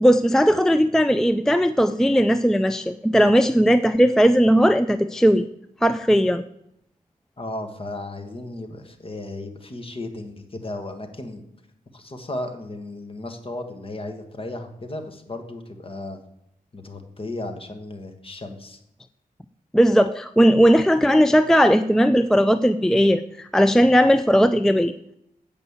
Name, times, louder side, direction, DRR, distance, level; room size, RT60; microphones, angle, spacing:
voice 1, 0.0-5.4 5.8-6.4 19.7-24.9, equal, 5° left, 11 dB, 0.3 m, -17 dB
voice 2, 7.4-11.4 11.9-16.2 16.7-18.8, left 2 dB, 35° left, 6 dB, 1.4 m, -35 dB
8.2 x 5.3 x 7.1 m, 0.77 s
cardioid pair, 75°, 15 cm